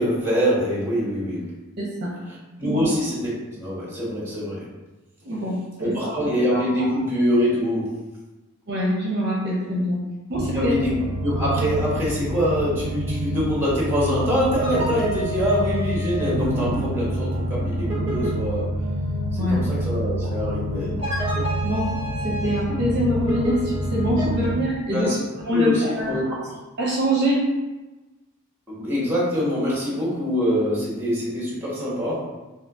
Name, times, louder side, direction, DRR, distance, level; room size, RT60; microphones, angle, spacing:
voice 1, 0.0-1.5 2.3-4.7 5.8-8.0 10.5-10.9 11.2-18.7 19.3-21.0 24.9-25.2 25.5-26.6 28.7-32.3, equal, 10° right, -6 dB, 1.1 m, -24 dB
voice 2, 1.8-2.1 2.6-2.8 5.2-6.6 8.7-10.7 19.3-19.6 21.6-22.0 22.2-25.1 25.5-26.3 26.8-27.4, equal, 50° right, -4 dB, 0.6 m, -24 dB
sound 1, 10.3-24.6, equal, 30° right, 1.3 m, -27 dB
2.7 x 2.7 x 3.5 m, 1.1 s
head